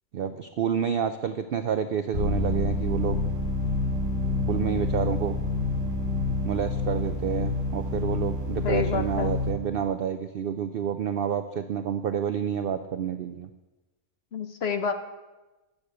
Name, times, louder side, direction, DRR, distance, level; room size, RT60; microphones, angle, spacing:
voice 1, 0.1-3.2 4.4-5.4 6.4-13.5, right 8 dB, 85° right, 10 dB, 0.5 m, -29 dB
sound 1, 2.1-9.5, left 2 dB, 45° right, 1.8 m, -28 dB
voice 2, 8.6-9.4 14.3-14.9, left 6 dB, 50° left, 8 dB, 0.9 m, -28 dB
10.5 x 6.6 x 7.8 m, 1.1 s
omnidirectional pair, 1.6 m